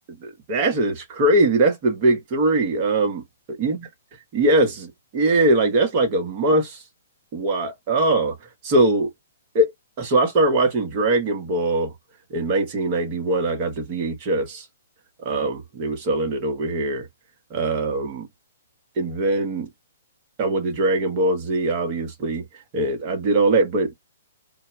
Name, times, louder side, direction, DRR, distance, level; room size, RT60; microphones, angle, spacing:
voice 1, 0.2-3.8 4.3-6.8 7.3-8.4 8.6-9.1 9.5-9.7 10.0-11.9 12.3-14.6 15.2-17.1 17.5-18.3 19.0-19.7 20.4-22.4 22.7-23.9, right 2 dB, 35° right, 1.0 m, -21 dB
2.2 x 2.1 x 2.9 m
hypercardioid pair, 135°, 0 cm